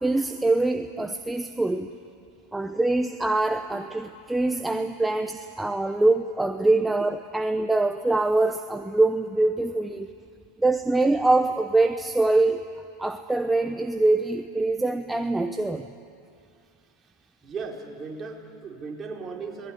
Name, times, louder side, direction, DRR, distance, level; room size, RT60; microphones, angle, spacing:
voice 1, 0.0-1.9 2.5-10.1 10.6-12.6 13.0-15.9, right 2 dB, 5° right, 7 dB, 0.9 m, -24 dB
voice 2, 17.4-19.7, right 4 dB, 30° right, 0 dB, 4.2 m, -36 dB
27.5 x 19.5 x 10.0 m, 2.5 s
supercardioid pair, 115°, 0 cm